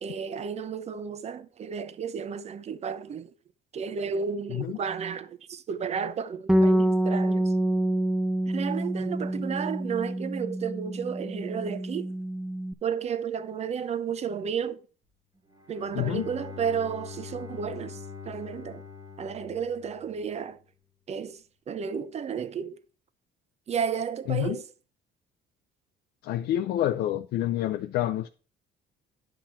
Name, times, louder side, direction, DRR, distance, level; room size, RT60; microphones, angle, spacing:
voice 1, 0.0-3.3 3.7-7.5 8.5-12.1 12.8-14.8 15.7-18.8 19.2-20.6 21.1-22.8 23.7-24.6, right 7 dB, 40° right, 0.8 m, -32 dB
Bass guitar, 6.5-12.7, right 1 dB, 5° right, 0.6 m, -27 dB
Bowed string instrument, 15.5-20.5, left 5 dB, 20° right, 1.4 m, -43 dB
voice 2, 15.9-16.3 24.3-24.6 26.2-28.3, left 13 dB, 75° left, 0.5 m, -28 dB
10.0 x 5.9 x 4.3 m
cardioid pair, 110°, 17 cm